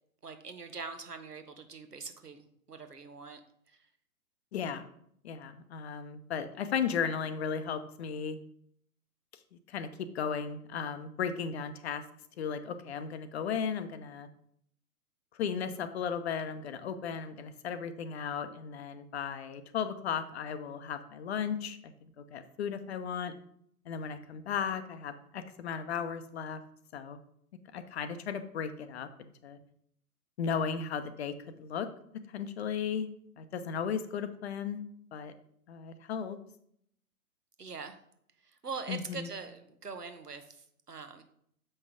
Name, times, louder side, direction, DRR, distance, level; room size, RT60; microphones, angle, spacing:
voice 1, 0.2-3.4 3.7-3.8 37.6-38.0 38.4-41.2, right 4 dB, 90° right, 8 dB, 1.1 m, -43 dB
voice 2, 4.5-4.9 5.2-8.4 9.5-9.9 10.1-12.0 12.4-14.3 15.4-23.3 23.9-26.6 26.9-27.2 27.7-29.1 29.4-29.6 30.4-31.9 32.3-33.1 33.4-34.8 35.1-35.3 35.7-36.4 38.9-39.3, left 7 dB, 45° left, 11 dB, 0.7 m, -35 dB
7.1 x 5.4 x 3.6 m, 0.68 s
figure-of-eight pair, 115°, 46 cm